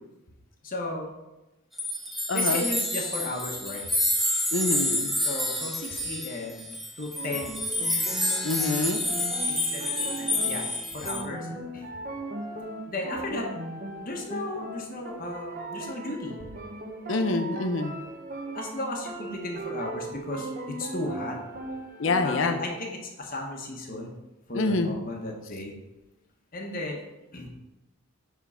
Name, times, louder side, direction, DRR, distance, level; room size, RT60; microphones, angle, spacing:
voice 1, 0.6-1.1 2.3-3.8 5.2-7.6 9.4-10.6 10.9-11.5 11.7-11.9 12.9-13.5 14.0-16.3 18.5-21.4 22.2-24.2 24.5-25.7 26.5-27.0 27.3-27.5, left 2 dB, 40° left, 0 dB, 1.1 m, -35 dB
sound 1, 1.8-11.2, left 1 dB, ahead, 0.6 m, -28 dB
voice 2, 2.3-2.7 4.5-5.1 8.4-9.0 17.1-17.9 22.0-22.6 24.5-24.9, left 3 dB, 65° left, 8 dB, 0.7 m, -26 dB
sound 2, 7.2-22.8, right 2 dB, 40° right, 0.9 m, -38 dB
7.2 x 3.7 x 5.6 m, 1.0 s
head